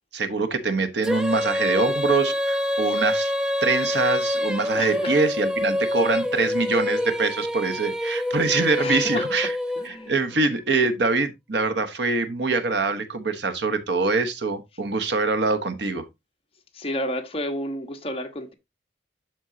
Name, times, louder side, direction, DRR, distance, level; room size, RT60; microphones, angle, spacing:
voice 1, 0.1-3.3 3.6-9.5 9.8-16.1, right 3 dB, 70° right, 1.1 m, -24 dB
Female singing, 1.0-10.2, left 1 dB, 5° right, 0.5 m, -26 dB
voice 2, 4.7-5.2 8.8-9.3 9.8-10.2 16.7-18.5, left 1 dB, 30° left, 1.2 m, -31 dB
12.5 x 4.5 x 2.8 m
head